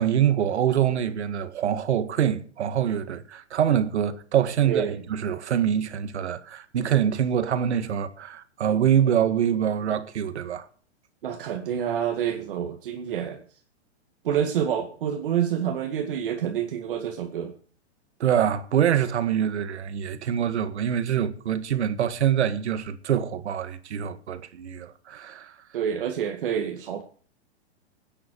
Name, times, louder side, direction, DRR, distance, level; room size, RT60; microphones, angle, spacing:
voice 1, 0.0-10.6 18.2-25.5, right 9 dB, 80° right, 1.9 m, -25 dB
voice 2, 4.7-5.0 11.2-13.4 14.2-17.5 25.7-27.0, right 9 dB, 50° right, 2.1 m, -27 dB
17.0 x 10.0 x 4.7 m
supercardioid pair, 180°, 33 cm